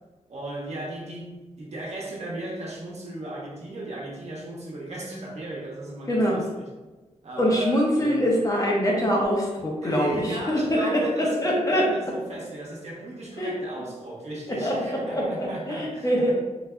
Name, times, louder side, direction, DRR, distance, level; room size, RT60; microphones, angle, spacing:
voice 1, 0.3-6.7 7.2-8.3 9.8-16.3, right 1 dB, 60° right, -4 dB, 0.9 m, -36 dB
voice 2, 6.1-6.4 7.4-11.0 11.4-11.8 13.4-13.5 14.5-16.3, equal, 25° left, -2 dB, 0.8 m, -24 dB
3.8 x 2.7 x 2.3 m, 1.2 s
wide cardioid pair, 115°, 13 cm